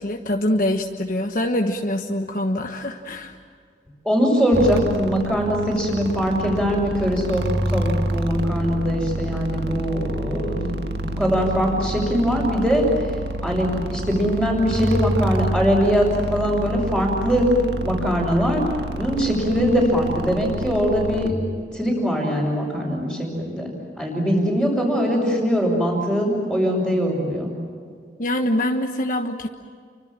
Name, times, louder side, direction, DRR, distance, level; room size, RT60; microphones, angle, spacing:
voice 1, 0.0-3.4 28.2-29.5, left 1 dB, 50° left, 3 dB, 1.3 m, -24 dB
voice 2, 4.0-10.7 11.0-12.8 13.4-17.5 17.8-18.6 19.0-21.3 21.7-27.5, equal, 5° right, -6 dB, 6.1 m, -22 dB
sound 1, 4.5-21.3, right 1 dB, 65° right, 1.8 m, -28 dB
30.0 x 25.0 x 7.5 m, 2.1 s
head